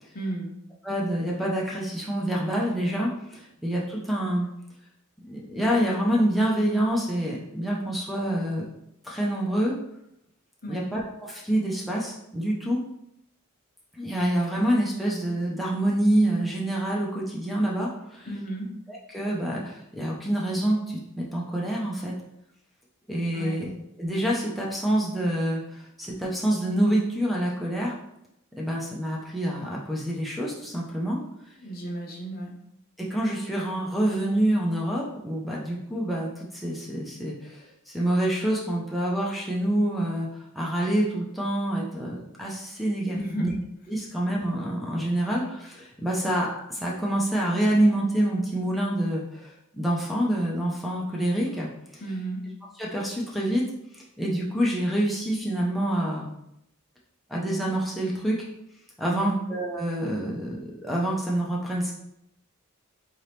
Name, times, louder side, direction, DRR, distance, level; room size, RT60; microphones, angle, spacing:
voice 1, 0.1-0.5 10.6-10.8 18.3-18.7 23.3-23.6 31.6-32.5 43.2-43.5 52.0-52.5 59.0-59.4, right 2 dB, 45° left, 0 dB, 0.7 m, -33 dB
voice 2, 0.8-4.5 5.2-8.7 9.0-9.7 10.7-12.8 13.9-18.3 18.9-22.1 23.1-23.7 24.0-27.9 28.6-31.2 33.0-40.3 40.5-43.5 43.9-52.0 52.8-53.6 53.9-56.3 57.3-58.4 59.0-61.9, right 1 dB, ahead, -3 dB, 0.5 m, -27 dB
3.8 x 2.8 x 3.3 m, 0.80 s
head